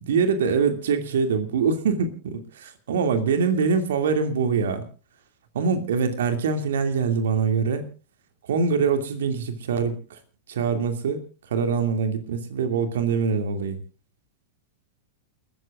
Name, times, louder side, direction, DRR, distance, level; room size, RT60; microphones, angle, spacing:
voice 1, 0.0-4.9 5.5-7.9 8.4-10.2 10.5-11.2 11.5-13.8, right 5 dB, 60° right, 7 dB, 2.6 m, -24 dB
29.5 x 13.5 x 2.5 m, 0.35 s
figure-of-eight pair, 90°, 0 cm